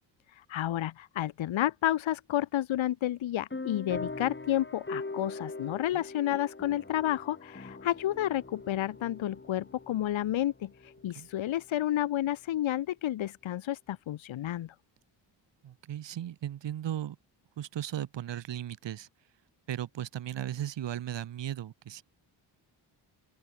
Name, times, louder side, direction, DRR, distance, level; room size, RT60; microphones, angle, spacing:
voice 1, 0.4-14.7, left 13 dB, 75° left, 1.7 m, -31 dB
sound 1, 3.5-11.6, left 3 dB, 25° left, 5.4 m, -42 dB
voice 2, 15.6-17.2 17.6-19.1 19.7-22.0, right 11 dB, 65° right, 1.6 m, -36 dB
open air
cardioid pair, 65°, 47 cm